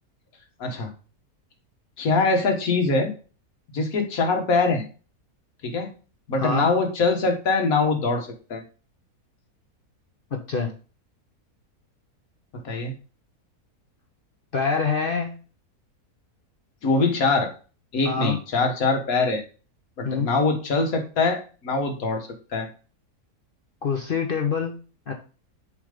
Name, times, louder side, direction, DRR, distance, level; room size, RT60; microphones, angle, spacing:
voice 1, 2.0-3.1 3.7-4.8 5.6-5.9 6.3-8.6 12.5-12.9 16.8-17.5 17.9-19.4 20.0-22.7, left 3 dB, 65° left, 4 dB, 1.7 m, -23 dB
voice 2, 6.4-6.7 10.3-10.7 14.5-15.3 18.0-18.4 20.0-20.3 23.8-24.8 25.1-25.2, left 5 dB, 45° left, 3 dB, 0.8 m, -25 dB
7.1 x 3.3 x 5.0 m, 0.36 s
omnidirectional pair, 1.6 m